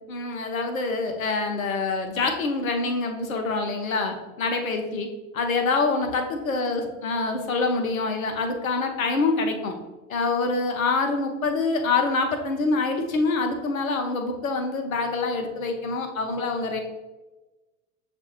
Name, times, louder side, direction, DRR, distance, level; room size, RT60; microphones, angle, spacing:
voice 1, 0.1-5.1 5.3-9.7 10.1-16.8, left 3 dB, 80° left, 5 dB, 0.8 m, -26 dB
6.9 x 2.5 x 2.9 m, 1.1 s
figure-of-eight pair, 75°, 41 cm